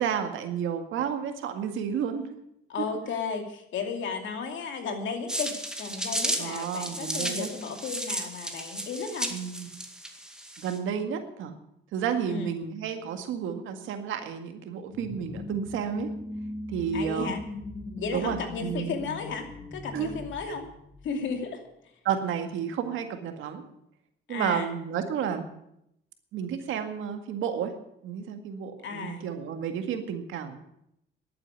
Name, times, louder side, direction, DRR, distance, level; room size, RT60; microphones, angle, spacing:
voice 1, 0.0-2.4 6.4-7.5 9.3-9.7 10.6-11.5 11.9-16.1 16.7-17.3 18.1-19.0 19.9-20.1 22.0-23.6 24.3-25.4 26.3-27.7 28.0-30.6, right 8 dB, 85° right, 6 dB, 1.9 m, -31 dB
voice 2, 2.7-5.5 5.8-9.3 12.3-12.5 16.9-17.4 18.0-20.7 21.0-21.6 24.3-24.7 28.8-29.3, left 5 dB, 70° left, 5 dB, 2.6 m, -34 dB
sound 1, 5.3-10.8, right 1 dB, 5° right, 2.1 m, -34 dB
sound 2, 14.9-21.3, left 2 dB, 35° left, 5.3 m, -39 dB
11.5 x 8.9 x 9.2 m, 0.78 s
cardioid pair, 90°, 20 cm